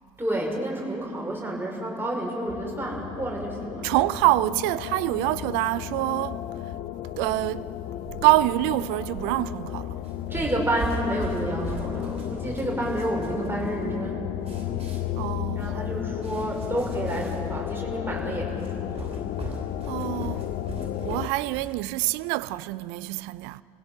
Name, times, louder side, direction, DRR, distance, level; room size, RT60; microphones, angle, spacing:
voice 1, 0.2-3.9 10.3-14.3 15.6-19.1, right 1 dB, 10° right, 5.6 m, -30 dB
sound 1, 2.5-21.3, left 11 dB, 50° left, 0.8 m, -33 dB
voice 2, 3.8-6.7 7.2-7.7 8.2-10.0 15.2-15.9 19.9-20.5 21.0-23.6, right 18 dB, 65° right, 0.5 m, -26 dB
sound 2, 10.0-21.8, right 3 dB, 35° right, 5.4 m, -40 dB
29.0 x 16.5 x 5.6 m
figure-of-eight pair, 55°, 18 cm